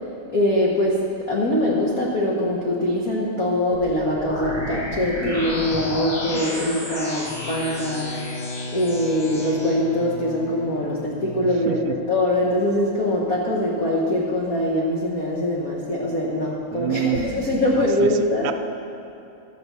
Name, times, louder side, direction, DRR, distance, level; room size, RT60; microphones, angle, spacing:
voice 1, 0.3-1.0 1.3-8.1 8.7-11.8 12.1-18.5, left 1 dB, 70° left, -4 dB, 0.8 m, -23 dB
sound 1, 3.7-9.7, equal, 40° left, 2.6 m, -31 dB
Bowed string instrument, 7.2-12.0, left 1 dB, 85° left, 2.1 m, -35 dB
voice 2, 11.4-12.0 16.7-18.5, right 10 dB, 90° right, 9 dB, 2.0 m, -29 dB
12.5 x 6.8 x 6.7 m, 2.7 s
omnidirectional pair, 3.5 m